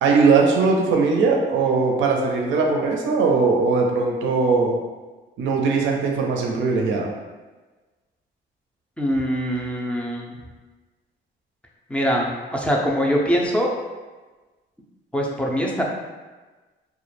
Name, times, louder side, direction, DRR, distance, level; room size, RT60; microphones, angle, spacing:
voice 1, 0.0-4.8 5.4-7.1, right 4 dB, 75° right, 0 dB, 0.4 m, -20 dB
voice 2, 9.0-10.4 11.9-13.7 15.1-15.8, equal, 5° left, -2 dB, 0.4 m, -23 dB
2.2 x 2.0 x 3.0 m, 1.3 s
cardioid pair, 90°, 20 cm